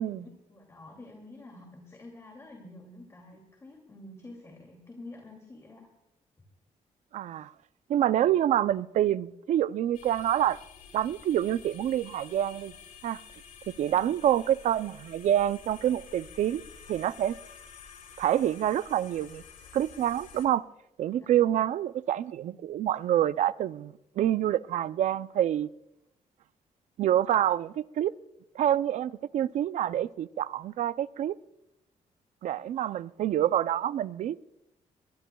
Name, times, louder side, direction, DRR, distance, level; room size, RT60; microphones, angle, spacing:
voice 1, 0.0-5.9 13.9-14.2 21.2-21.6, left 2 dB, 20° left, 2.5 m, -48 dB
voice 2, 7.1-7.5 7.9-10.6 10.9-12.7 13.0-13.2 13.7-16.6 16.9-17.4 18.2-19.4 19.7-20.6 21.0-25.7 27.0-28.1 28.5-31.4 32.4-34.4, right 11 dB, 65° right, 0.5 m, -27 dB
sound 1, 9.9-20.5, left 7 dB, 75° left, 2.8 m, -50 dB
22.5 x 21.0 x 2.3 m
cardioid pair, 135°, 13 cm